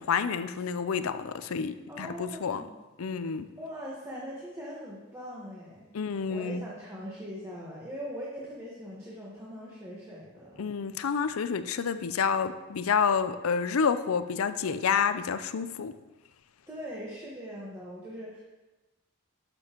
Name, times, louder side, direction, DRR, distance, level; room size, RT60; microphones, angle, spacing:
voice 1, 0.0-2.6 3.0-3.5 5.9-6.6 10.6-15.9, left 6 dB, 70° left, 12 dB, 0.5 m, -29 dB
voice 2, 1.9-2.7 3.6-10.7 16.7-18.4, equal, 15° right, -6 dB, 1.3 m, -41 dB
11.5 x 6.9 x 3.0 m, 1.1 s
head